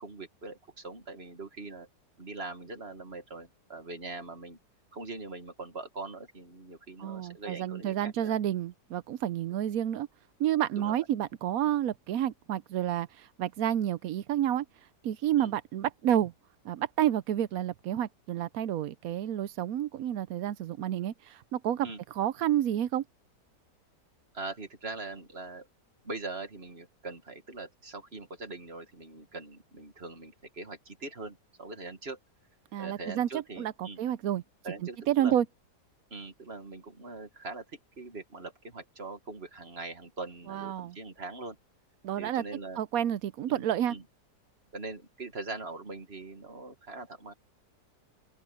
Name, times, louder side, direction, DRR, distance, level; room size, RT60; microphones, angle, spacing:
voice 1, 0.0-1.9 2.2-4.6 4.9-8.3 10.7-11.1 15.4-15.5 21.8-22.0 24.3-25.7 26.0-32.2 32.8-34.0 34.6-35.4 36.1-41.6 42.2-42.8 43.5-44.0 44.7-47.3, right 3 dB, 35° right, 2.0 m, -42 dB
voice 2, 7.0-10.1 10.4-14.6 15.0-16.3 16.6-21.9 22.2-23.0 32.7-34.4 35.1-35.5 40.5-41.0 42.0-42.4 42.8-44.0, right 11 dB, 70° right, 0.9 m, -30 dB
open air
omnidirectional pair, 1.8 m